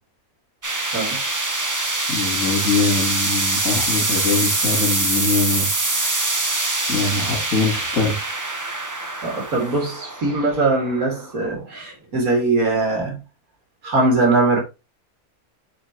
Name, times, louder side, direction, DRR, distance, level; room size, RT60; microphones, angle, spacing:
sound 1, 0.6-11.8, right 2 dB, 20° right, 0.5 m, -24 dB
voice 1, 2.1-6.2 6.9-8.1, left 3 dB, 60° left, 3.1 m, -23 dB
voice 2, 9.2-13.2 13.8-14.6, right 2 dB, 70° right, 2.5 m, -21 dB
6.4 x 5.0 x 2.9 m
omnidirectional pair, 1.6 m